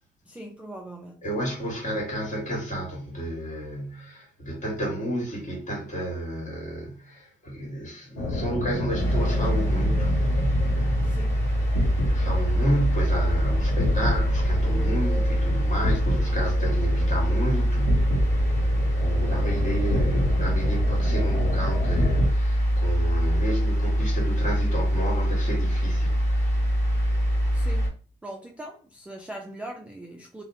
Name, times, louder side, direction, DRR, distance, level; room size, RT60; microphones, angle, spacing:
voice 1, 0.3-1.2 11.0-11.4 27.5-27.9 28.2-30.4, right 1 dB, 5° right, 0.3 m, -40 dB
voice 2, 1.2-10.3 12.1-18.1 19.0-26.2, right 1 dB, 40° left, 1.4 m, -31 dB
sound 1, 8.2-22.3, left 1 dB, 80° left, 0.7 m, -29 dB
sound 2, 9.0-27.9, equal, 15° left, 1.3 m, -24 dB
2.7 x 2.0 x 2.6 m
cardioid pair, 90°, 20 cm